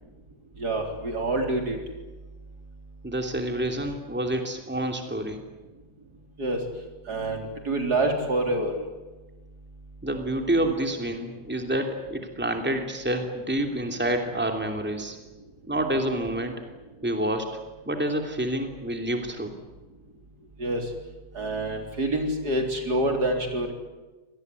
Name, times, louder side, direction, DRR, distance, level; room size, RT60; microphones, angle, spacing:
voice 1, 0.6-1.8 6.4-6.6 7.1-8.7 20.6-20.9 21.3-23.7, right 1 dB, 70° right, 3 dB, 4.5 m, -26 dB
voice 2, 3.0-5.4 10.0-15.2 15.7-16.6 17.0-17.6 17.8-19.5, right 1 dB, 5° right, 4 dB, 2.9 m, -28 dB
26.5 x 19.0 x 9.6 m, 1.2 s
omnidirectional pair, 1.8 m